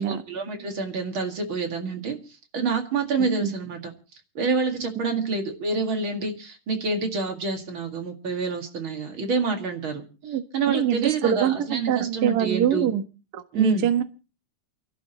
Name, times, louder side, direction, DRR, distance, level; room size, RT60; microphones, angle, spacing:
voice 1, 0.0-3.9 4.3-12.9 13.5-13.9, right 4 dB, 45° right, 4 dB, 2.4 m, -27 dB
voice 2, 10.7-13.0 13.3-14.0, right 10 dB, 80° right, 8 dB, 0.8 m, -24 dB
29.0 x 12.5 x 3.0 m, 0.34 s
omnidirectional pair, 3.8 m